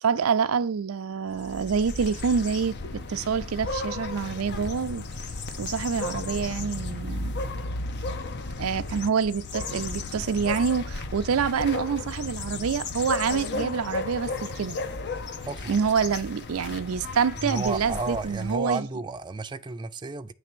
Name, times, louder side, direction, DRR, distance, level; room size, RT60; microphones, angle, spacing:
voice 1, 0.0-5.1 5.6-7.3 8.6-14.8 15.7-18.9, right 6 dB, 85° right, 0.5 m, -27 dB
sound 1, 1.3-18.6, left 3 dB, 55° left, 0.7 m, -34 dB
voice 2, 15.4-15.8 17.4-20.3, right 3 dB, 20° right, 0.4 m, -32 dB
8.5 x 3.3 x 6.0 m
head